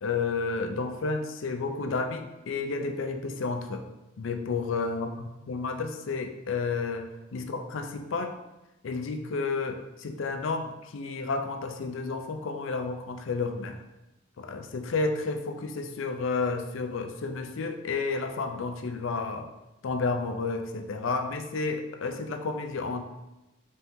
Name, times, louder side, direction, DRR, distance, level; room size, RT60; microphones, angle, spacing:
voice 1, 0.0-3.9 4.2-5.1 5.5-8.4 8.8-13.8 14.4-19.5 19.8-23.0, left 4 dB, 70° left, 6 dB, 0.4 m, -31 dB
4.2 x 3.5 x 2.7 m, 0.98 s
head